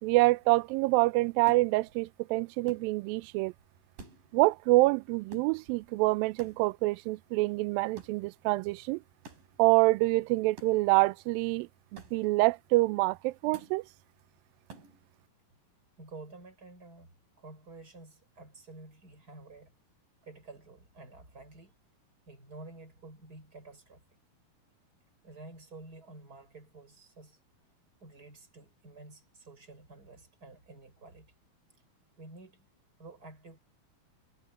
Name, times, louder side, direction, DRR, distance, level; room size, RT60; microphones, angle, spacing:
voice 1, 0.0-3.5 4.3-9.0 9.6-13.8, right 21 dB, 80° right, 2.2 m, -26 dB
sound 1, 1.5-2.1 2.7-3.3 3.6-3.7 3.9-4.7 5.3-6.0 6.4-7.0 8.0-8.3 9.2-9.6 10.6-11.0 12.0-12.5 13.5-13.9 14.7-15.1, right 3 dB, 60° right, 6.4 m, -51 dB
voice 2, 16.0-17.1 17.4-19.7 20.2-21.7 22.2-24.0 25.2-27.4 28.0-31.3 32.2-32.6 33.0-33.6, right 2 dB, 25° right, 6.6 m, -50 dB
omnidirectional pair, 4.4 m